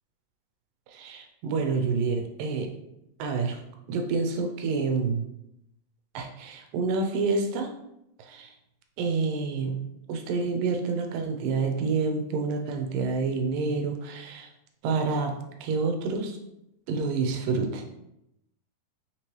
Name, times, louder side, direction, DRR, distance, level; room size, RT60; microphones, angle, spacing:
voice 1, 0.9-2.7 3.2-3.6 3.9-5.2 6.1-7.7 8.2-8.5 9.0-9.8 10.1-14.5 14.8-16.4 16.9-18.0, right 4 dB, 85° right, 4 dB, 2.3 m, -28 dB
5.7 x 3.0 x 3.1 m, 0.82 s
omnidirectional pair, 3.9 m